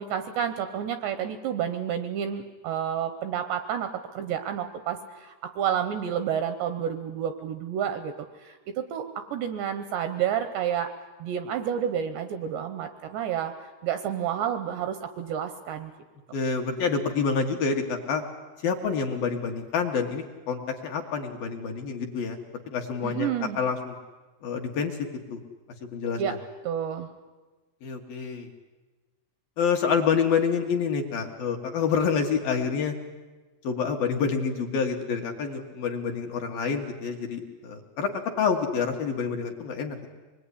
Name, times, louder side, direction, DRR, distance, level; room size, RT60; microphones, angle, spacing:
voice 1, 0.0-8.1 8.4-9.0 9.3-10.9 11.2-15.9 23.0-23.6 26.2-26.4 26.6-27.1, right 9 dB, 75° right, 9 dB, 2.6 m, -30 dB
voice 2, 16.3-18.2 18.6-22.4 22.7-23.3 23.6-23.9 24.4-25.0 25.3-25.4 25.9-26.2 27.8-28.5 29.6-32.9 33.6-38.1 38.4-40.0, left 6 dB, 65° left, 3 dB, 2.5 m, -27 dB
25.0 x 21.0 x 9.9 m, 1.2 s
omnidirectional pair, 6.0 m